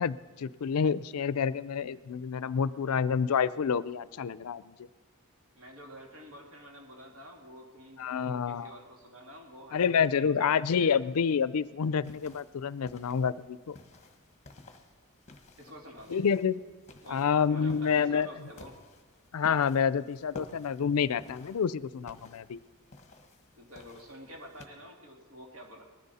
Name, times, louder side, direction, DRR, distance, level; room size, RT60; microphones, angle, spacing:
voice 1, 0.0-4.7 8.0-8.7 9.7-13.8 16.1-16.6 17.1-18.3 19.3-22.6, left 6 dB, 80° left, 17 dB, 0.4 m, -28 dB
voice 2, 5.5-9.8 10.1-10.9 15.6-16.2 17.0-18.7 23.6-25.8, equal, 65° right, 1 dB, 2.5 m, -49 dB
sound 1, 12.0-24.7, left 2 dB, 30° left, 1.4 m, -53 dB
19.5 x 13.5 x 4.2 m, 1.4 s
head